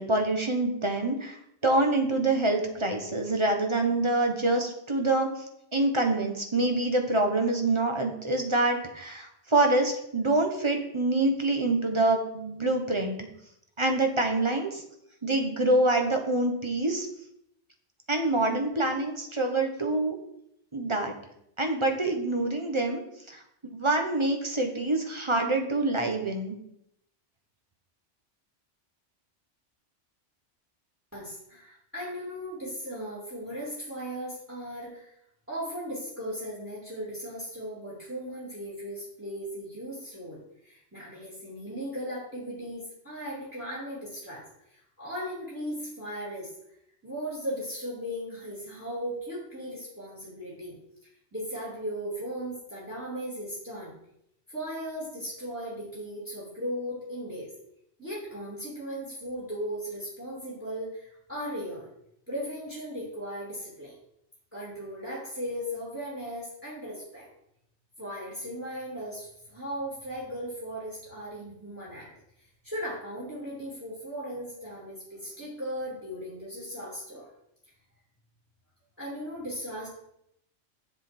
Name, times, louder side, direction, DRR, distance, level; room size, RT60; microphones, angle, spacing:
voice 1, 0.0-1.4 1.6-5.3 5.7-13.2 13.8-14.8 15.2-17.1 18.1-20.2 20.7-21.1 21.6-23.0 23.3-23.4 23.7-26.5, right 2 dB, 25° right, 4 dB, 1.0 m, -26 dB
voice 2, 31.1-35.1 35.5-44.4 44.7-46.5 47.0-50.8 51.3-53.9 54.5-57.5 58.0-61.9 62.3-63.9 64.5-67.3 68.0-72.1 72.4-77.3 79.0-79.9, equal, 10° right, -6 dB, 2.7 m, -37 dB
7.3 x 7.0 x 4.4 m, 0.76 s
omnidirectional pair, 1.2 m